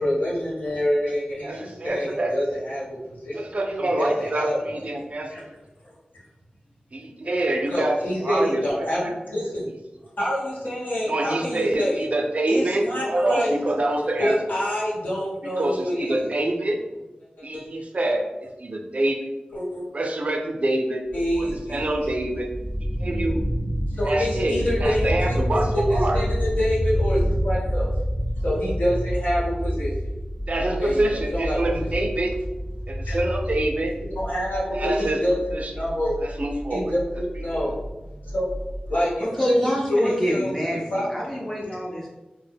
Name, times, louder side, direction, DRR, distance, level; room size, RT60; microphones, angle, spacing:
voice 1, 0.0-3.4 4.0-4.6 5.3-5.4 7.7-9.6 10.2-12.0 12.5-13.5 14.2-16.2 17.4-17.6 19.5-19.8 21.1-21.8 23.9-27.9 28.4-29.9 30.8-31.6 33.0-33.2 34.2-35.4 35.7-36.1 36.7-37.0 37.4-37.7 38.3-38.5 38.9-41.1, equal, 70° left, -8 dB, 1.1 m, -26 dB
voice 2, 1.4-2.6 3.3-5.3 6.9-9.1 11.1-14.4 15.4-16.8 17.4-19.2 19.9-21.0 21.3-22.5 23.0-23.4 24.0-26.2 30.5-32.3 32.9-33.9 34.7-35.2 35.5-35.9 36.2-36.9 37.5-37.7, right 1 dB, 50° right, 2 dB, 0.4 m, -26 dB
sound 1, 21.1-38.9, equal, 35° left, 0.7 m, -28 dB
voice 3, 39.2-42.1, equal, 10° left, -4 dB, 0.4 m, -27 dB
2.1 x 2.1 x 3.3 m, 1.1 s
wide cardioid pair, 65°, 3 cm